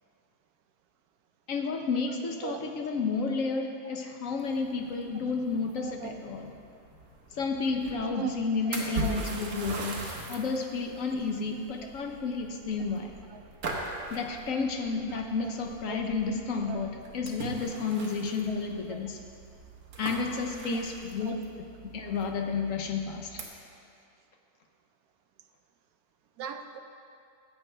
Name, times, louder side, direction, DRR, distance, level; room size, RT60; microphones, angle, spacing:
voice 1, 1.5-6.5 7.3-13.1 14.1-19.2 20.0-21.4 21.8-23.4, left 4 dB, 65° left, 3 dB, 0.8 m, -31 dB
sound 1, 4.4-23.4, right 2 dB, 50° right, 1.4 m, -42 dB
voice 2, 5.8-6.1 8.0-9.2 13.3-13.4 15.1-15.5 15.9-16.0 16.7-16.8 18.5-18.6 18.9-19.0 20.7-20.8 21.2-21.4 26.4-26.8, right 9 dB, 70° right, 6 dB, 0.9 m, -39 dB
15.0 x 7.9 x 3.3 m, 2.4 s
omnidirectional pair, 2.1 m